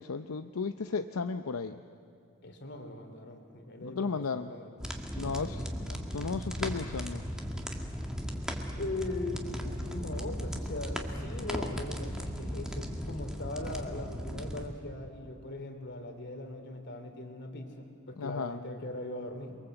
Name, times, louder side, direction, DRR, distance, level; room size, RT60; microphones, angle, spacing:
voice 1, 0.0-1.8 3.8-4.5 5.2-7.2 18.2-18.6, left 4 dB, 75° left, 9 dB, 0.6 m, -35 dB
voice 2, 2.4-5.6 8.8-9.5 9.9-19.6, left 2 dB, 55° left, 6 dB, 3.0 m, -40 dB
sound 1, 4.8-14.7, equal, 5° right, 1.8 m, -37 dB
29.0 x 23.0 x 7.9 m, 2.4 s
head